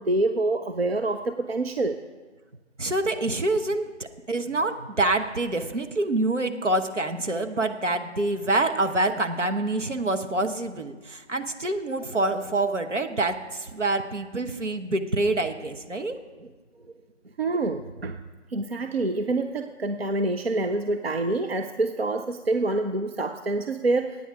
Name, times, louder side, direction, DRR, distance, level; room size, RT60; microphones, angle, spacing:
voice 1, 0.0-2.0 17.4-18.2 18.5-24.2, right 2 dB, 55° right, 7 dB, 0.7 m, -26 dB
voice 2, 2.8-3.9 4.3-16.5 16.8-16.9, right 2 dB, 80° right, 6 dB, 1.3 m, -26 dB
16.5 x 9.1 x 4.8 m, 1.3 s
figure-of-eight pair, 160°, 36 cm